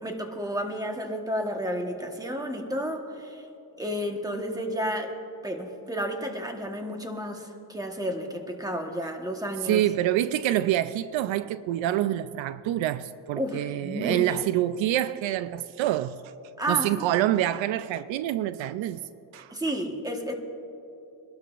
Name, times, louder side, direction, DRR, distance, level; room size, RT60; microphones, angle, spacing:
voice 1, 0.0-3.4 3.8-5.1 5.4-9.8 13.4-14.4 16.6-17.1 19.5-20.3, equal, 10° right, 1.3 m, -31 dB
voice 2, 9.6-16.2 16.7-19.0 19.3-19.5, right 13 dB, 75° right, 0.5 m, -26 dB
24.5 x 12.5 x 2.5 m
cardioid pair, 110°, 47 cm